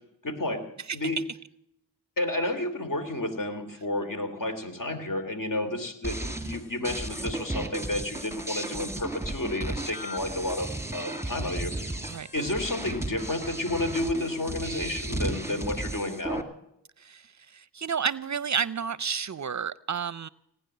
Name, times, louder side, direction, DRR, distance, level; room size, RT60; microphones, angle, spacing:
voice 1, 0.2-0.6 0.9-1.2 2.2-12.0 12.3-16.4, left 1 dB, 50° left, 7 dB, 3.2 m, -31 dB
sound 1, 6.0-16.4, right 2 dB, 5° right, 2.2 m, -34 dB
voice 2, 17.5-20.3, right 6 dB, 45° right, 20 dB, 0.6 m, -30 dB
18.5 x 9.9 x 7.9 m, 0.76 s
cardioid pair, 50°, 42 cm